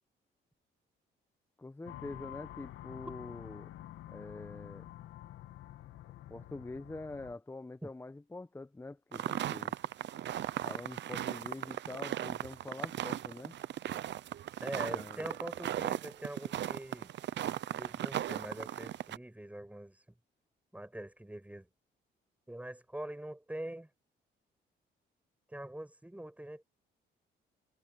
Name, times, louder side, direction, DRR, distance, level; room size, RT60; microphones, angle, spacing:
voice 1, 1.6-3.7 4.1-4.9 6.3-9.7 10.6-13.6 14.7-15.3, left 2 dB, 10° left, 1.0 m, -45 dB
sound 1, 1.9-7.4, left 14 dB, 85° left, 1.9 m, -48 dB
sound 2, 9.1-19.2, right 12 dB, 65° right, 0.7 m, -37 dB
voice 2, 14.6-17.1 17.7-20.0 20.7-21.7 22.5-23.9 25.5-26.6, right 1 dB, 5° right, 7.1 m, -43 dB
cardioid pair, 90°, 20 cm